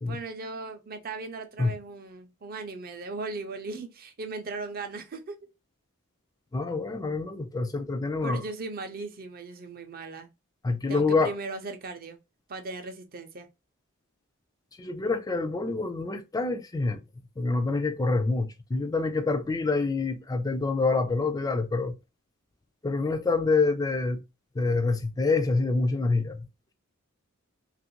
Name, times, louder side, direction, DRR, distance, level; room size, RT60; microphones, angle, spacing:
voice 1, 0.0-5.4 8.2-10.3 10.9-12.2 12.5-13.5, right 3 dB, 40° right, 0.5 m, -38 dB
voice 2, 6.5-8.4 10.6-11.3 14.8-17.0 17.4-21.9 22.8-24.2 24.6-26.4, left 3 dB, 15° left, 0.3 m, -26 dB
2.9 x 2.4 x 2.8 m
head